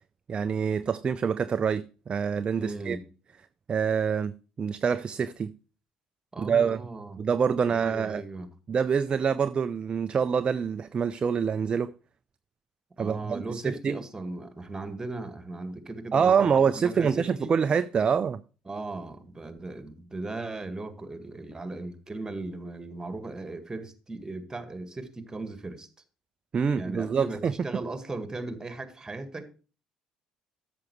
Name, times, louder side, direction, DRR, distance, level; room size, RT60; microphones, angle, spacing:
voice 1, 0.3-3.0 3.7-4.3 4.6-5.5 6.4-6.8 7.2-8.2 8.7-11.9 13.0-14.0 16.1-18.4 26.5-27.5, right 6 dB, 35° right, 0.4 m, -26 dB
voice 2, 2.6-3.0 6.3-7.2 7.7-8.5 13.0-17.5 18.6-25.9 26.7-29.5, right 2 dB, 20° right, 1.6 m, -37 dB
13.5 x 6.0 x 3.1 m
figure-of-eight pair, 50°, 3 cm